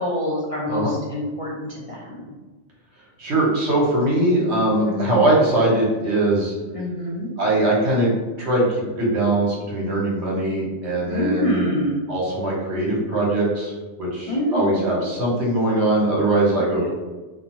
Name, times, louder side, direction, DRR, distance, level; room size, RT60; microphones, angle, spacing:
voice 1, 0.0-2.3 4.9-5.3 6.7-7.3 11.0-12.0 14.3-15.0 16.5-16.9, equal, 60° left, -5 dB, 0.3 m, -26 dB
voice 2, 3.2-6.5 7.4-11.6 12.1-13.7 14.0-16.9, right 1 dB, 65° right, -4 dB, 1.1 m, -21 dB
2.5 x 2.2 x 2.9 m, 1.2 s
omnidirectional pair, 1.2 m